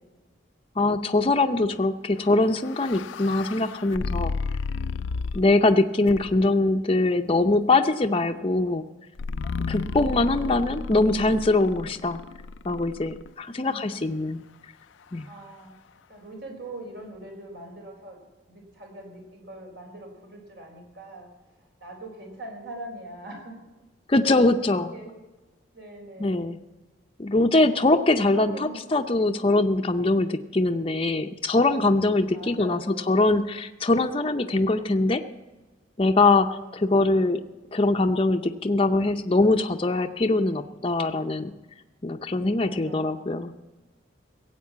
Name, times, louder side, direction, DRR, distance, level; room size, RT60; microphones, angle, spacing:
voice 1, 0.8-4.3 5.3-8.8 9.7-12.2 12.6-14.4 15.1-15.3 24.1-24.9 26.2-26.6 27.2-28.5 28.9-35.2 36.0-37.4 37.7-41.5 42.0-43.5, left 2 dB, 30° left, 6 dB, 0.6 m, -22 dB
sound 1, 2.3-5.6 6.1-6.6 9.2-13.3, left 4 dB, 85° left, 0.4 m, -33 dB
voice 2, 4.7-5.1 5.9-6.3 13.5-14.0 15.3-15.8 16.1-23.6 24.2-25.1 25.7-26.4 28.0-28.8 29.6-30.0 32.3-33.3 36.5-37.1 42.3-43.4, right 1 dB, 65° right, 1 dB, 4.7 m, -43 dB
16.5 x 8.2 x 8.4 m, 1.1 s
head